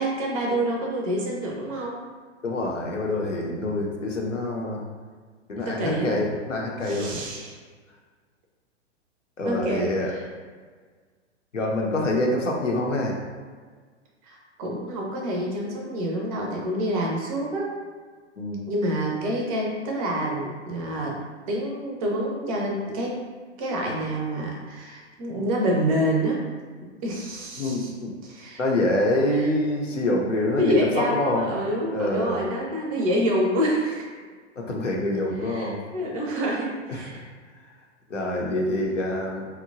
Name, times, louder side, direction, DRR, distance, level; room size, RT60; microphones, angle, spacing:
voice 1, 0.0-2.0 5.6-6.2 6.8-7.5 9.4-10.2 14.2-17.8 18.7-21.2 21.5-23.2 23.6-26.4 27.0-27.9 28.2-28.6 29.3-29.4 30.6-34.1 35.4-37.2, right 1 dB, 30° right, -1 dB, 0.5 m, -27 dB
voice 2, 2.4-4.8 5.5-7.1 9.4-10.1 11.5-13.2 18.4-18.6 27.6-28.1 28.6-31.5 31.9-32.4 34.6-35.8 36.9-37.3 38.1-39.5, left 1 dB, 85° left, -1 dB, 0.6 m, -26 dB
2.9 x 2.1 x 2.5 m, 1.5 s
figure-of-eight pair, 105°, 36 cm